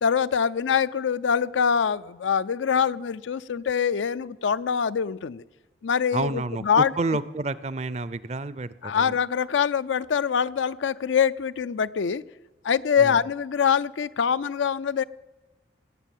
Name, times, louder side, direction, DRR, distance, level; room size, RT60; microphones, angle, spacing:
voice 1, 0.0-5.4 5.8-6.9 8.8-12.2 12.6-15.0, left 7 dB, 85° left, 16 dB, 0.4 m, -24 dB
voice 2, 6.1-9.1 13.0-13.2, right 3 dB, 35° right, 17 dB, 0.5 m, -29 dB
19.0 x 8.3 x 7.2 m, 1.2 s
head